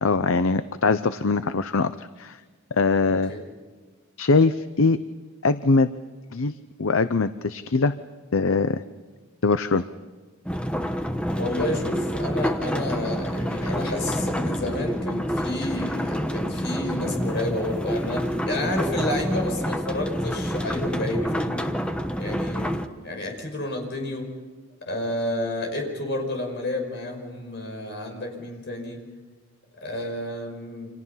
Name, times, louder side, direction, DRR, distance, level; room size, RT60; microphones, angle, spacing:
voice 1, 0.0-2.4 2.7-3.3 4.2-5.0 5.4-5.9 6.3-7.9 8.3-8.8 9.4-9.8 13.6-13.7, left 3 dB, 70° left, 12 dB, 0.7 m, -22 dB
sound 1, 10.4-22.9, equal, 5° left, 1.1 m, -28 dB
voice 2, 11.4-21.7 22.2-22.7 23.0-24.3 24.9-29.0 29.8-30.9, left 1 dB, 55° left, 3 dB, 5.8 m, -30 dB
29.5 x 26.5 x 5.7 m, 1.4 s
head